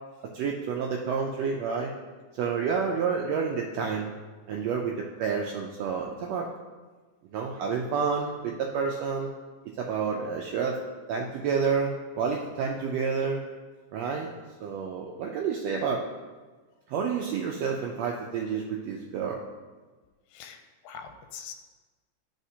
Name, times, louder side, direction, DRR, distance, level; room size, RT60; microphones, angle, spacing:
voice 1, 0.3-1.9 2.3-4.1 4.5-6.5 7.3-9.3 9.8-10.8 11.1-13.4 13.9-14.3 14.6-16.0 16.9-19.4, right 6 dB, 90° right, -1 dB, 1.4 m, -29 dB
voice 2, 20.3-21.5, left 7 dB, 90° left, 6 dB, 2.1 m, -43 dB
12.0 x 4.1 x 2.7 m, 1.3 s
omnidirectional pair, 3.6 m